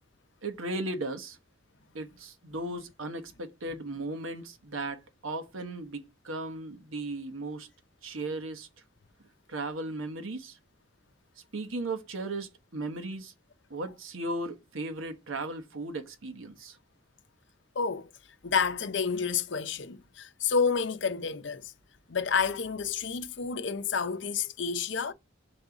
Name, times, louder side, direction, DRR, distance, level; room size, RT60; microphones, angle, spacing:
voice 1, 0.4-1.4 1.9-7.7 8.0-8.7 9.5-10.6 11.5-13.3 13.7-16.8, right 2 dB, 85° right, 1.1 m, -36 dB
voice 2, 17.8-18.1 18.4-21.7 22.1-25.1, left 5 dB, 60° left, 0.6 m, -29 dB
5.4 x 3.9 x 4.8 m
head